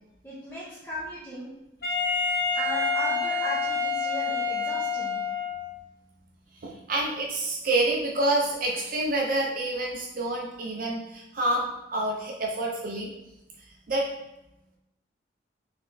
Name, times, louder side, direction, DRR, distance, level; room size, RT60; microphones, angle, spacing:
voice 1, 0.2-1.5 2.5-5.2, left 1 dB, 10° left, -8 dB, 0.6 m, -36 dB
Wind instrument woodwind instrument, 1.8-5.7, left 4 dB, 50° left, 1.0 m, -27 dB
voice 2, 6.6-13.1 13.9-14.0, right 2 dB, 45° right, -1 dB, 0.4 m, -28 dB
4.0 x 3.1 x 2.6 m, 0.88 s
head